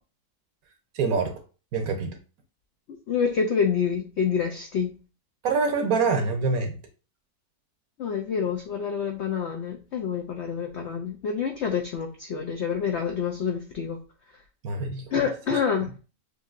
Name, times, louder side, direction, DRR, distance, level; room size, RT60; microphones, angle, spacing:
voice 1, 0.9-1.3 1.7-2.1 5.4-6.8 14.6-15.0, right 4 dB, 65° right, 1.1 m, -25 dB
voice 2, 3.1-5.0 8.0-14.0 15.1-15.9, left 6 dB, 75° left, 0.6 m, -27 dB
6.5 x 2.7 x 2.4 m
omnidirectional pair, 1.8 m